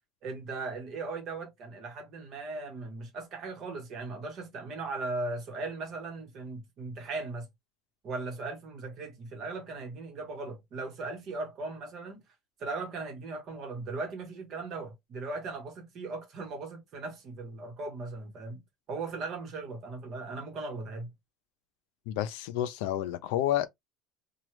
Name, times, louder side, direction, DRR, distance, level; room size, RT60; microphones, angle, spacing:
voice 1, 0.2-7.5 8.0-12.2 12.6-18.6 18.9-21.1, right 3 dB, 40° right, 1.1 m, -38 dB
voice 2, 22.1-23.7, left 12 dB, 85° left, 0.4 m, -30 dB
3.0 x 2.3 x 3.0 m
cardioid pair, 165°, 0 cm